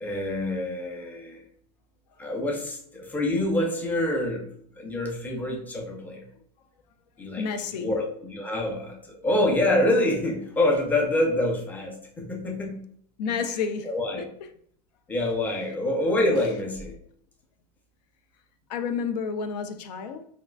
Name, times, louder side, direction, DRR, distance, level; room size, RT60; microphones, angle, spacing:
voice 1, 0.0-1.4 2.2-6.3 7.2-7.5 7.7-12.8 13.3-13.4 13.9-14.2 15.1-17.0, left 1 dB, 10° left, 0.5 m, -26 dB
voice 2, 7.4-7.9 13.2-13.9 14.2-14.3 18.7-20.3, left 6 dB, 75° left, 0.4 m, -30 dB
3.5 x 2.4 x 2.3 m
supercardioid pair, 135°, 21 cm